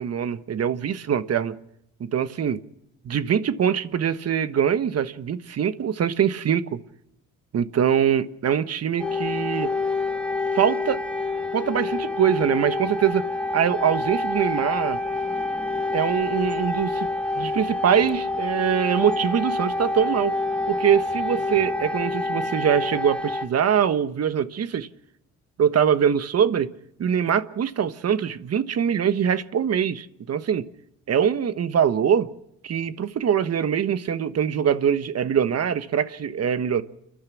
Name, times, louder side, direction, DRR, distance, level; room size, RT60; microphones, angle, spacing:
voice 1, 0.0-1.5 2.0-2.6 3.0-6.8 7.5-9.7 10.5-11.0 11.5-13.2 13.5-15.0 15.9-17.1 17.3-20.4 20.7-24.9 25.6-26.7 27.0-30.7 31.1-32.3 32.6-36.8, right 8 dB, 55° right, 1.3 m, -23 dB
sound 1, 9.0-23.4, left 2 dB, 5° left, 3.0 m, -27 dB
29.0 x 11.5 x 8.4 m
cardioid pair, 90°, 30 cm